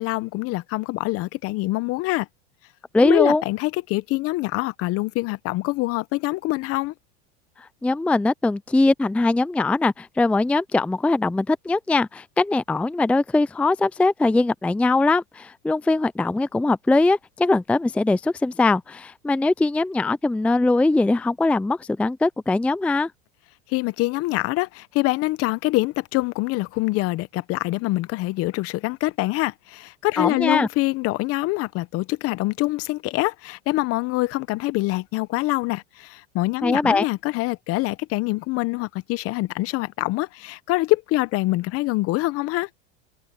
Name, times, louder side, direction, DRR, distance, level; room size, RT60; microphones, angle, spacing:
voice 1, 0.0-2.3 3.0-6.9 23.7-42.7, left 20 dB, 50° left, 1.0 m, -25 dB
voice 2, 2.9-3.4 7.6-23.1 30.2-30.7 36.6-37.1, left 2 dB, 5° left, 0.4 m, -21 dB
supercardioid pair, 110°, 30 cm